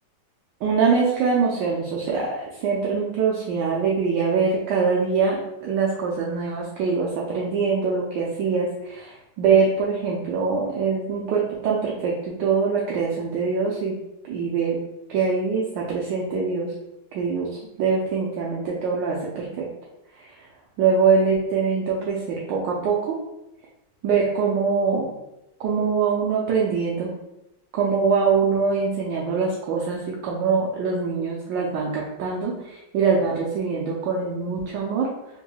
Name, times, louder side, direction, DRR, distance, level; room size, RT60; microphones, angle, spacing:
voice 1, 0.6-13.9 14.3-14.8 15.1-16.7 17.1-17.5 17.8-19.6 20.2-20.3 20.8-23.2 24.0-25.1 25.6-27.1 27.7-35.1, right 5 dB, 75° right, -3 dB, 1.2 m, -23 dB
3.7 x 3.0 x 2.2 m, 0.88 s
omnidirectional pair, 2.2 m